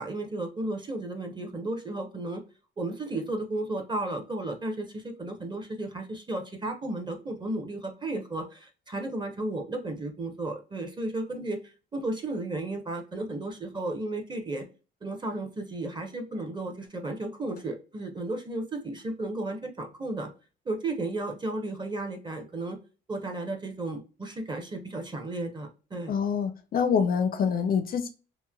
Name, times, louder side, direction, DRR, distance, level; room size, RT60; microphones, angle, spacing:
voice 1, 0.0-2.4 2.8-14.6 15.0-20.3 20.7-22.8 23.1-26.2, right 2 dB, 25° right, 4 dB, 0.7 m, -34 dB
voice 2, 26.1-28.1, left 6 dB, 50° left, 9 dB, 0.4 m, -26 dB
3.0 x 2.1 x 2.2 m, 0.34 s
cardioid pair, 90°, 20 cm